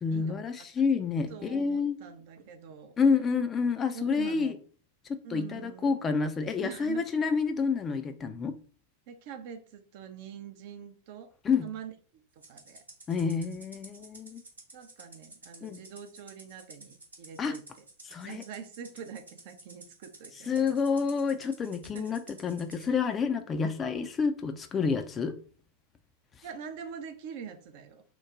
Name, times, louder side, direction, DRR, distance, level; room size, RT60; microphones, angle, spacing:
voice 1, 0.0-2.0 3.0-4.6 5.1-8.5 11.4-11.7 13.1-14.4 15.6-15.8 17.4-17.5 18.0-18.4 20.5-25.4, left 5 dB, 20° left, 8 dB, 0.4 m, -29 dB
voice 2, 1.3-3.0 3.9-4.6 5.2-6.0 6.6-7.3 9.1-11.3 11.6-12.2 12.5-12.8 14.7-17.6 18.2-20.8 21.9-22.1 26.4-28.0, right 7 dB, 50° right, 7 dB, 0.5 m, -44 dB
Rattle (instrument), 12.4-22.9, right 2 dB, 75° right, 0.9 m, -52 dB
3.0 x 2.1 x 3.7 m, 0.39 s
figure-of-eight pair, 90°, 0 cm